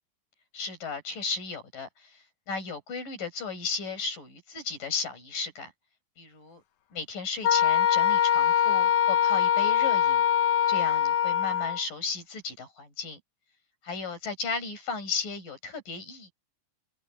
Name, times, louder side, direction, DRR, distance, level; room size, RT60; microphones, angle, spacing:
voice 1, 0.5-2.2 2.5-5.7 6.2-6.6 6.9-10.2 10.7-13.2 13.8-16.3, left 4 dB, 70° left, 8.9 m, -35 dB
Wind instrument woodwind instrument, 7.4-11.8, left 9 dB, 85° left, 3.2 m, -23 dB
omnidirectional pair, 3.9 m